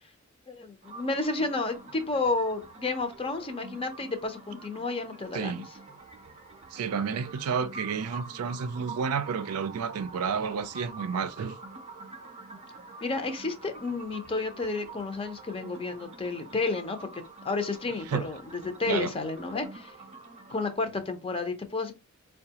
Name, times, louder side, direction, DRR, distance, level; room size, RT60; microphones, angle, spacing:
voice 1, 0.5-5.6 13.0-19.9 20.5-21.9, left 3 dB, 25° left, 0.6 m, -31 dB
sound 1, 0.8-20.7, right 3 dB, 30° right, 0.6 m, -47 dB
voice 2, 5.3-5.7 6.7-11.6 18.1-18.2 18.8-19.1, right 6 dB, 85° right, 0.4 m, -30 dB
4.6 x 2.3 x 2.8 m
head